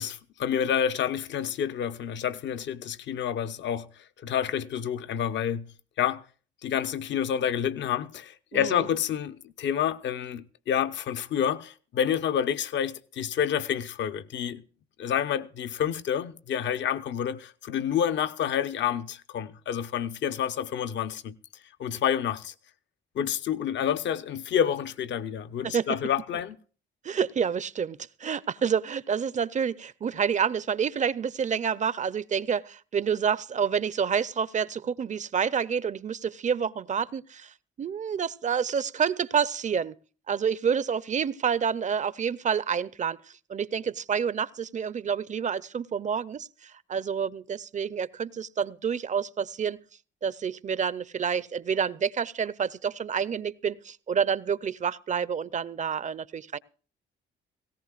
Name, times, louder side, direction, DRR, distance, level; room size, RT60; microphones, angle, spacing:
voice 1, 0.0-6.2 6.6-14.6 15.0-21.3 21.8-22.5 23.1-26.5, left 9 dB, 65° left, 0.8 m, -29 dB
voice 2, 8.5-8.9 25.6-25.9 27.0-40.0 40.3-43.2 43.5-49.8 50.2-56.6, right 7 dB, 40° right, 0.5 m, -28 dB
18.0 x 17.0 x 2.4 m
cardioid pair, 90°, 20 cm